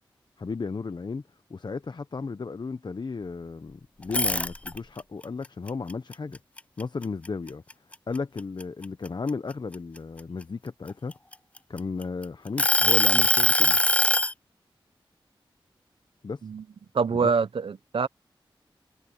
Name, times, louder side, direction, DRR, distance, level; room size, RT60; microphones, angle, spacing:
voice 1, 0.4-1.2 1.5-6.4 6.8-7.6 8.1-11.1 11.7-13.8 16.2-16.4 17.1-17.4, left 4 dB, 55° left, 0.8 m, -34 dB
sound 1, 4.0-5.0 5.4-7.3 7.7-7.9 8.4-10.2 10.9-12.0 12.6-14.3, left 1 dB, 15° left, 0.4 m, -22 dB
voice 2, 16.9-18.1, right 5 dB, 80° right, 1.0 m, -25 dB
wide cardioid pair, 60°, 9 cm